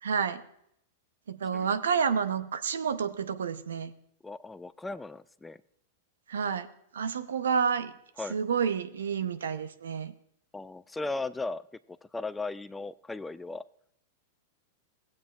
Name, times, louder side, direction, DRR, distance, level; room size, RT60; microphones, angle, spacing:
voice 1, 0.0-0.4 1.3-3.9 6.3-6.7 6.9-7.9 8.3-10.1, right 6 dB, 80° right, 11 dB, 0.7 m, -29 dB
voice 2, 4.2-5.6 8.2-8.4 10.5-11.6 11.9-13.6, left 3 dB, 10° left, 15 dB, 0.3 m, -37 dB
16.5 x 8.5 x 2.4 m, 0.72 s
hypercardioid pair, 105°, 0 cm